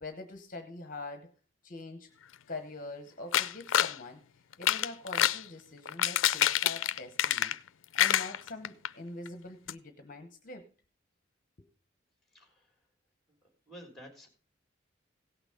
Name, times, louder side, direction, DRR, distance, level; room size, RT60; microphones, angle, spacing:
voice 1, 0.0-1.3 1.6-2.1 2.5-4.2 4.6-7.5 7.9-10.7, left 2 dB, 40° left, 7 dB, 1.0 m, -44 dB
sound 1, 3.3-4.0 4.5-5.4 5.9-7.7 8.0-8.9 9.3-9.4 9.7-9.8, left 11 dB, 80° left, 0.4 m, -27 dB
voice 2, 12.3-12.7 13.4-14.3, equal, ahead, 3 dB, 3.3 m, -51 dB
17.0 x 6.0 x 5.1 m, 0.38 s
head